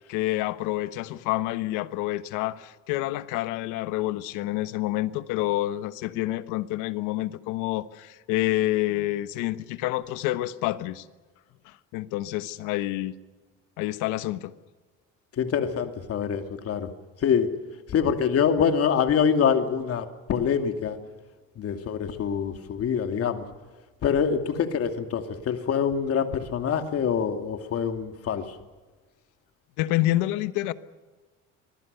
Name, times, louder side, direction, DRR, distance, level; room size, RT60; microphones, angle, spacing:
voice 1, 0.1-11.0 11.6-13.1 13.8-14.5 29.8-30.7, left 16 dB, 85° left, 14 dB, 1.2 m, -28 dB
voice 2, 15.4-16.9 17.2-17.5 17.9-21.0 21.6-23.5 24.0-28.6, left 7 dB, 50° left, 7 dB, 2.7 m, -25 dB
26.0 x 20.5 x 6.9 m, 1.3 s
cardioid pair, 110°, 30 cm